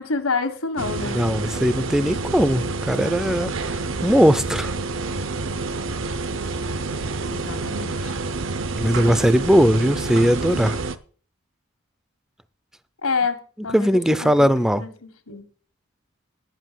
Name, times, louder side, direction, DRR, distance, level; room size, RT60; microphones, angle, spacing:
voice 1, 0.0-1.2 7.3-8.1 13.0-15.4, left 4 dB, 80° left, 1.6 m, -28 dB
sound 1, 0.8-11.0, right 3 dB, 60° right, 0.7 m, -28 dB
voice 2, 1.1-4.7 8.8-10.8 13.7-14.8, equal, 5° right, 0.4 m, -19 dB
11.5 x 5.7 x 7.5 m
head